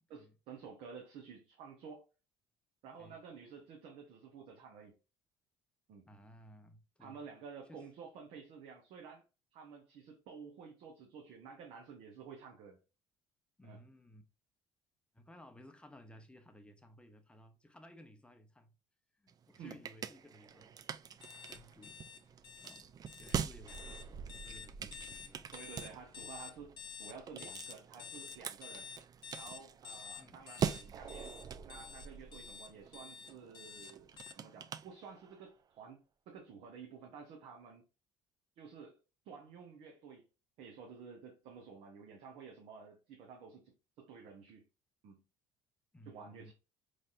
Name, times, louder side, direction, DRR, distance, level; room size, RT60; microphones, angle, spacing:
voice 1, 0.1-2.0 2.8-4.9 5.9-6.1 7.0-9.2 9.5-12.8 13.6-13.8 19.6-19.8 25.5-26.7 27.0-28.9 29.3-31.4 31.6-37.8 38.6-39.0 39.2-40.3 40.6-44.6 45.0-45.2 46.1-46.5, right 6 dB, 70° right, 0.9 m, -52 dB
voice 2, 6.0-7.2 7.6-7.8 13.6-14.2 15.1-18.7 19.1-22.0 22.6-22.9 23.2-25.5 30.2-30.5 45.9-46.5, equal, 10° left, 0.7 m, -58 dB
sound 1, 19.3-35.5, right 7 dB, 40° right, 0.4 m, -44 dB
sound 2, 21.2-34.3, left 6 dB, 50° left, 0.5 m, -50 dB
4.1 x 3.2 x 2.5 m
supercardioid pair, 80°, 10 cm